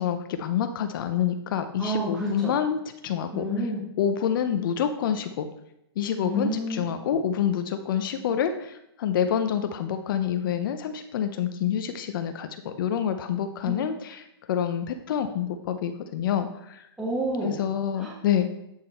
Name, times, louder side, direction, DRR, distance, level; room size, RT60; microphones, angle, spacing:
voice 1, 0.0-2.8 3.0-3.4 4.0-5.5 6.0-16.8 17.4-18.5, left 9 dB, 55° left, 8 dB, 0.6 m, -27 dB
voice 2, 1.8-2.6 3.3-3.8 6.2-6.8 7.1-7.2 13.6-13.8 17.0-17.6 17.9-18.1, equal, 5° right, -6 dB, 1.5 m, -29 dB
8.7 x 3.6 x 4.3 m, 0.83 s
hypercardioid pair, 135°, 14 cm